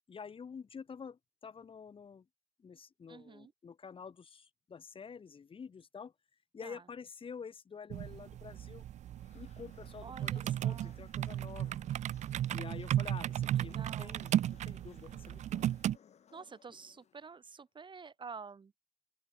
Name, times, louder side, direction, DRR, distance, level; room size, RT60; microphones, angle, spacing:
voice 1, 0.1-2.3 2.6-6.1 6.5-8.8 9.3-11.8 12.5-15.7, left 6 dB, 50° left, 2.8 m, -48 dB
voice 2, 3.1-3.5 6.6-6.8 10.0-11.0 13.4-14.2 16.3-18.7, right 5 dB, 45° right, 3.4 m, -50 dB
sound 1, 7.9-16.0, right 11 dB, 85° right, 0.5 m, -35 dB
sound 2, 9.0-17.5, left 8 dB, 70° left, 6.5 m, -65 dB
open air
cardioid pair, 100°, 12 cm